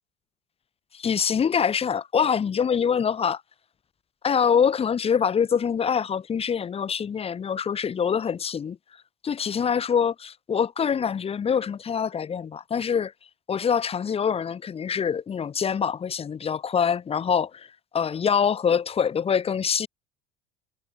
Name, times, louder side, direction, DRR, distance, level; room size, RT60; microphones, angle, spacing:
voice 1, 0.9-3.4 4.2-8.8 9.2-13.1 13.5-17.7 17.9-19.9, left 7 dB, 30° left, 1.2 m, -24 dB
supercardioid pair, 90°, 20 cm